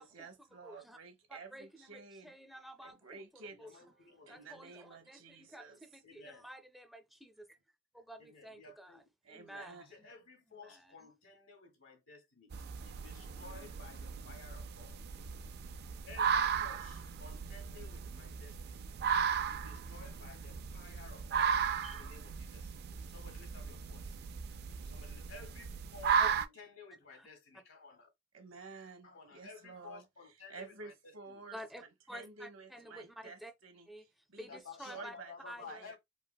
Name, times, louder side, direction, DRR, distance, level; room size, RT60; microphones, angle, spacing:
voice 1, 0.0-2.3 2.8-3.8 4.2-5.8 9.2-9.8 28.3-30.0 30.5-31.6 32.1-33.9 34.3-34.5 34.8-35.3 35.7-36.0, right 4 dB, 80° right, 1.0 m, -51 dB
voice 2, 0.6-1.0 1.3-3.7 4.3-7.6 7.9-9.0 9.3-10.1 10.5-11.1 21.8-22.0 26.2-26.3 27.1-27.3 31.5-31.8 32.1-33.5 33.9-35.1 35.5-35.8, equal, ahead, 0.5 m, -51 dB
voice 3, 3.5-4.6 6.0-6.4 8.2-9.0 9.8-15.0 16.0-18.9 19.4-21.6 21.9-22.7 23.1-24.2 24.8-28.1 29.0-31.4 34.5-36.0, left 4 dB, 90° left, 1.5 m, -54 dB
sound 1, 12.5-26.5, right 7 dB, 55° right, 0.3 m, -36 dB
4.5 x 2.1 x 2.2 m
head